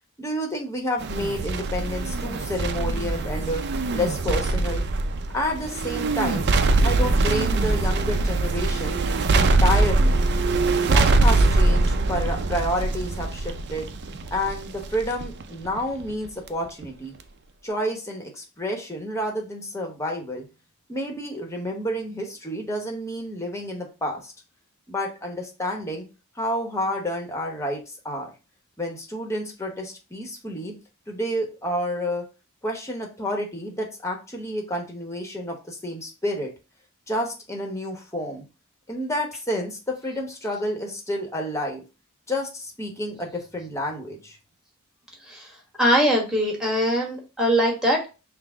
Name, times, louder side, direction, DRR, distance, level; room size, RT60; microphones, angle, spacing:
voice 1, 0.2-3.6 3.9-4.8 5.3-6.5 6.8-9.0 9.3-10.2 10.9-13.9 14.3-17.1 17.6-20.4 20.9-24.3 24.9-26.1 26.4-28.3 28.8-30.7 31.1-32.2 32.6-36.5 37.1-38.4 38.9-41.8 42.3-44.4, equal, 15° left, 1 dB, 0.9 m, -29 dB
sound 1, 1.0-16.5 16.8-16.9, right 2 dB, 50° right, 0.4 m, -23 dB
voice 2, 45.8-48.1, equal, 5° right, -1 dB, 1.2 m, -21 dB
5.7 x 2.0 x 3.5 m, 0.30 s
head